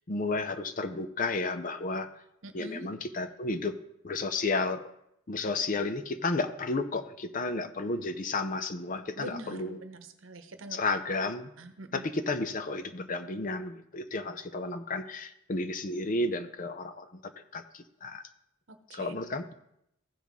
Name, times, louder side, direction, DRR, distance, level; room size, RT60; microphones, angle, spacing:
voice 1, 0.1-2.1 2.5-3.8 4.0-4.8 5.3-9.8 10.7-11.5 11.9-18.2 18.9-19.5, left 3 dB, 40° left, 10 dB, 0.5 m, -32 dB
voice 2, 2.4-2.9 9.1-10.8 11.6-12.1 18.7-19.1, right 2 dB, 70° right, 9 dB, 0.9 m, -44 dB
15.0 x 5.7 x 3.6 m, 0.80 s
head